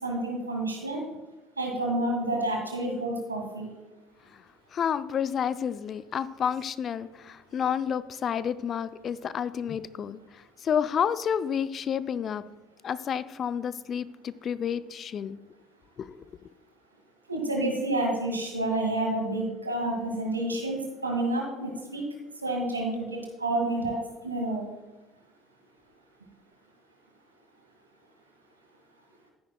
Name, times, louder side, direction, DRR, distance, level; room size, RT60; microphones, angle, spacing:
voice 1, 0.0-1.0 1.6-3.7 17.3-22.0 22.4-24.0 24.2-24.6, right 1 dB, 85° right, 1 dB, 1.7 m, -29 dB
voice 2, 4.7-12.4 12.8-15.4 16.0-16.2, left 8 dB, 40° left, 15 dB, 0.4 m, -30 dB
13.5 x 10.0 x 2.3 m, 1.1 s
figure-of-eight pair, 60°, 0 cm